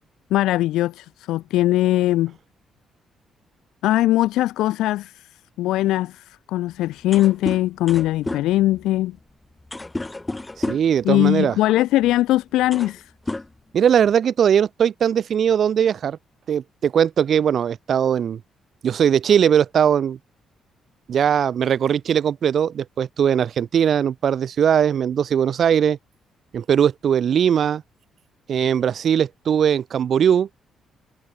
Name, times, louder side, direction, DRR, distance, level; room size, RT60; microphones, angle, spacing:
voice 1, 0.3-2.3 3.8-5.3 5.6-9.2 11.0-13.1, left 15 dB, 90° left, 1.5 m, -20 dB
sound 1, 6.7-6.8 7.0-11.0 12.0-12.2 12.5-13.0 13.3-14.1, left 2 dB, 15° left, 6.2 m, -31 dB
voice 2, 10.6-11.6 13.7-16.2 16.5-18.4 18.8-20.2 21.1-26.0 26.5-27.8 28.5-30.5, right 8 dB, 60° right, 2.2 m, -19 dB
cardioid pair, 90°, 0 cm